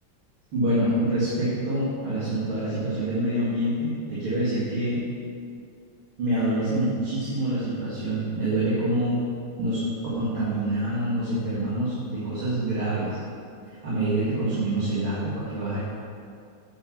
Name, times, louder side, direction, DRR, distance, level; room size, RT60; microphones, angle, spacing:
voice 1, 0.5-5.0 6.2-9.2 9.6-9.8 10.2-13.2 13.7-15.8, right 1 dB, 85° right, -10 dB, 3.0 m, -26 dB
8.2 x 7.6 x 6.1 m, 2.4 s
omnidirectional pair, 2.2 m